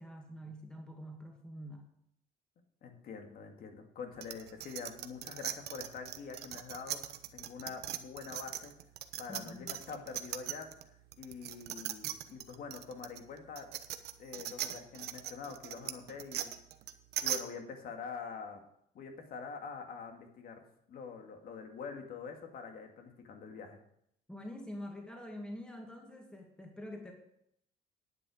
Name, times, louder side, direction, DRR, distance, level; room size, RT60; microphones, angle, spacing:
voice 1, 0.0-1.9 9.3-9.8 24.3-27.1, equal, 5° left, 1 dB, 2.2 m, -46 dB
voice 2, 2.8-8.7 9.2-10.7 11.2-13.7 14.2-16.5 17.2-18.6 18.9-20.6 20.9-23.8, left 5 dB, 60° left, 4 dB, 2.2 m, -45 dB
sound 1, 4.2-10.8 11.1-17.4, right 12 dB, 75° right, 1.0 m, -39 dB
10.5 x 8.9 x 5.0 m, 0.73 s
cardioid pair, 110°, 17 cm